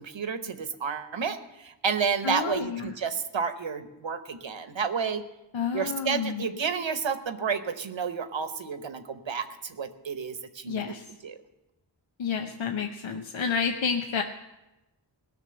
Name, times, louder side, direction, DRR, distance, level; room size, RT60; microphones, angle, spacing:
voice 1, 0.0-5.2 5.7-10.9 11.2-11.4, right 6 dB, 70° right, 10 dB, 1.0 m, -31 dB
voice 2, 2.2-2.9 5.5-6.4 10.7-11.1 12.2-14.2, left 6 dB, 70° left, 4 dB, 0.8 m, -30 dB
17.5 x 6.3 x 7.7 m, 0.99 s
wide cardioid pair, 55°, 47 cm